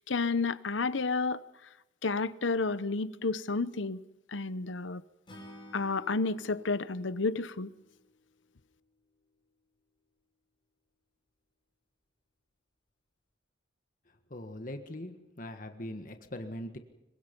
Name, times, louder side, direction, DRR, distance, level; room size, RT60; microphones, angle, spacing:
voice 1, 0.0-1.4 2.0-4.0 4.3-5.0 5.7-7.7, left 3 dB, 90° left, 0.9 m, -31 dB
Acoustic guitar / Strum, 5.3-8.5, equal, 25° left, 6.7 m, -53 dB
voice 2, 14.3-16.8, left 1 dB, 45° left, 1.5 m, -41 dB
26.5 x 23.5 x 5.4 m
head